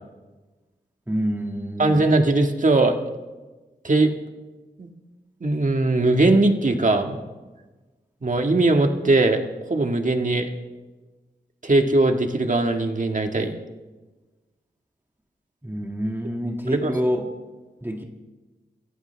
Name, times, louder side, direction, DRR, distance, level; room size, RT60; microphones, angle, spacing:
voice 1, 1.1-2.1 15.6-17.3 17.8-18.0, equal, 10° right, 2 dB, 2.1 m, -27 dB
voice 2, 1.8-3.0 3.8-4.1 4.8-4.9 5.4-7.2 8.2-9.4 9.7-10.5 11.6-13.5 16.7-16.9, right 2 dB, 45° right, 4 dB, 1.8 m, -20 dB
29.0 x 14.5 x 3.4 m, 1.2 s
wide cardioid pair, 65°, 18 cm